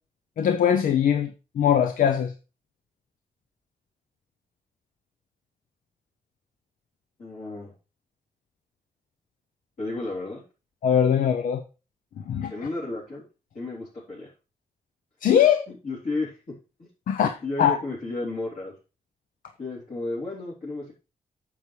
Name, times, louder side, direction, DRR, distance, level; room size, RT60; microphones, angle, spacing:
voice 1, 0.4-2.3 10.8-11.6 12.2-12.5 15.2-15.7 17.1-17.8, left 8 dB, 90° left, 0.6 m, -21 dB
voice 2, 7.2-7.7 9.8-10.4 12.5-13.2 13.5-14.3 15.8-16.4 16.8-16.9 17.4-18.7 19.6-20.9, left 2 dB, 60° left, 3.7 m, -32 dB
9.1 x 7.1 x 3.2 m
cardioid pair, 80°, 14 cm